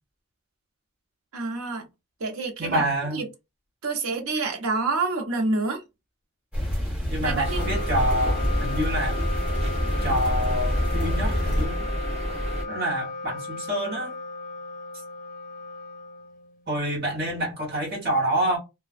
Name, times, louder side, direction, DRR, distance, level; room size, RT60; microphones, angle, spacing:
voice 1, 1.3-1.9 2.2-2.8 3.1-3.2 3.8-5.8 7.2-7.6, right 3 dB, 80° right, 0.6 m, -27 dB
voice 2, 2.6-3.2 7.1-9.2 10.0-11.9 12.7-14.2 16.7-18.6, right 1 dB, 45° right, 1.3 m, -27 dB
sound 1, 6.5-11.7, equal, 5° right, 1.0 m, -27 dB
Wind instrument woodwind instrument, 7.2-16.8, left 3 dB, 40° left, 0.5 m, -36 dB
sound 2, 7.4-12.6, equal, 25° right, 0.7 m, -31 dB
2.4 x 2.1 x 2.4 m
head